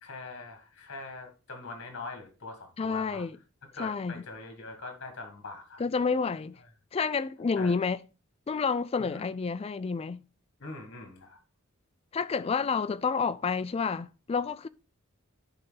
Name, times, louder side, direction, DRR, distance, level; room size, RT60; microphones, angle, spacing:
voice 1, 0.0-3.2 3.7-5.8 7.5-7.7 9.0-9.2 10.6-11.4, left 3 dB, 55° left, 1.6 m, -42 dB
voice 2, 2.8-3.4 3.8-4.2 5.8-6.6 6.9-8.0 8.5-10.2 12.1-14.7, left 5 dB, 25° left, 0.3 m, -29 dB
10.5 x 4.0 x 3.9 m
head